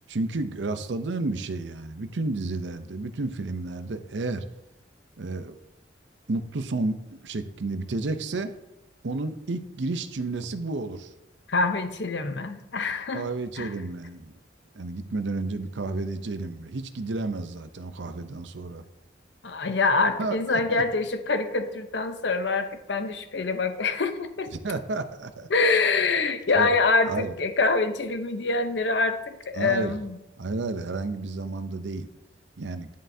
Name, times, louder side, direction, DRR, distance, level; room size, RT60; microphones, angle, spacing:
voice 1, 0.1-4.4 5.2-5.6 6.3-8.5 9.0-11.1 13.1-14.3 14.7-18.8 20.2-20.8 24.6-25.5 26.6-26.7 27.0-27.3 29.5-30.0 30.4-32.1 32.6-32.9, right 3 dB, 70° right, 10 dB, 0.6 m, -31 dB
voice 2, 11.5-13.3 13.6-13.7 19.4-24.5 25.5-30.2, left 3 dB, 65° left, 8 dB, 0.8 m, -25 dB
10.5 x 7.5 x 2.7 m, 0.92 s
head